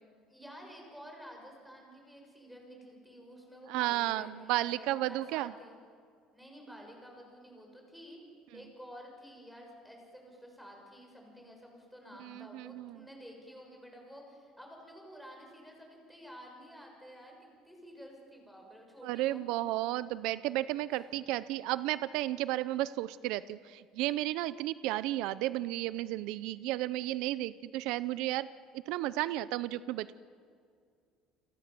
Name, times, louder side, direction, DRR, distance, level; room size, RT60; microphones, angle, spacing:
voice 1, 0.3-5.8 6.3-8.2 8.5-19.7 20.9-21.1, equal, ahead, 1 dB, 6.8 m, -51 dB
voice 2, 3.7-5.5 12.2-13.0 19.0-28.5 28.9-30.1, right 16 dB, 75° right, 16 dB, 0.6 m, -33 dB
29.0 x 26.5 x 7.7 m, 2.3 s
cardioid pair, 150°, 0 cm